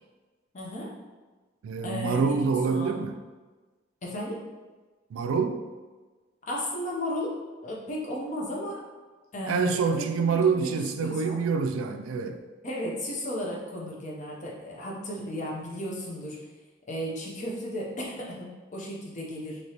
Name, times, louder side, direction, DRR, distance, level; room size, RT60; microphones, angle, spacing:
voice 1, 0.5-0.9 1.8-2.4 2.7-3.0 4.0-4.4 6.5-7.4 7.6-8.8 9.3-10.7 11.0-11.4 12.6-16.4 16.9-19.6, left 1 dB, 35° left, -2 dB, 0.6 m, -34 dB
voice 2, 1.6-3.1 5.1-5.6 9.5-12.4, right 5 dB, 85° right, 7 dB, 0.3 m, -26 dB
3.2 x 2.8 x 2.8 m, 1.3 s
head